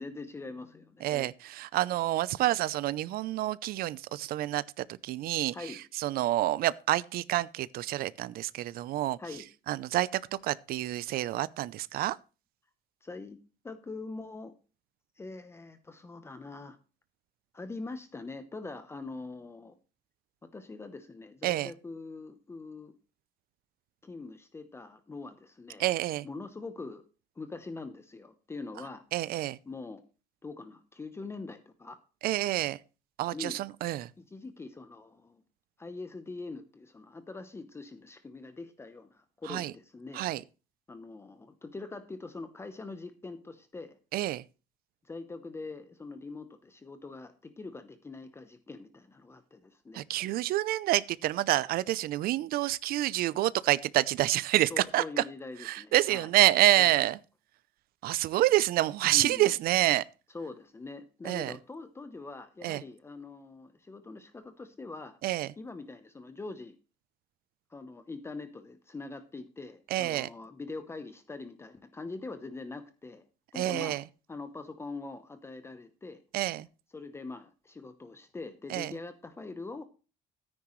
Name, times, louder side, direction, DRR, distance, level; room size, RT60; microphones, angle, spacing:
voice 1, 0.0-1.3 5.5-5.8 9.2-9.5 13.0-13.4 13.6-14.6 15.2-16.8 17.5-19.8 20.4-22.9 24.0-25.9 26.2-27.1 27.4-29.0 29.7-30.0 30.4-32.0 33.3-33.7 34.2-35.4 35.8-40.3 40.9-44.0 45.0-50.0 50.3-50.4 54.7-56.3 56.8-57.0 59.1-59.5 60.3-65.2 65.6-66.8 67.7-73.3 73.5-74.0 74.3-76.2 76.9-79.8, left 3 dB, 15° left, 0.9 m, -43 dB
voice 2, 1.0-5.5 6.0-9.2 9.7-10.1 10.4-12.2 21.4-21.7 25.8-26.3 29.1-29.6 32.2-32.8 33.2-34.1 39.5-39.7 40.1-40.4 44.1-44.4 49.9-55.0 55.6-57.2 58.0-60.0 61.2-61.5 62.6-62.8 65.2-65.5 69.9-70.3 73.6-74.0 76.3-76.7 78.7-78.9, right 15 dB, 55° right, 0.6 m, -28 dB
13.5 x 9.8 x 3.2 m
cardioid pair, 160°, 18 cm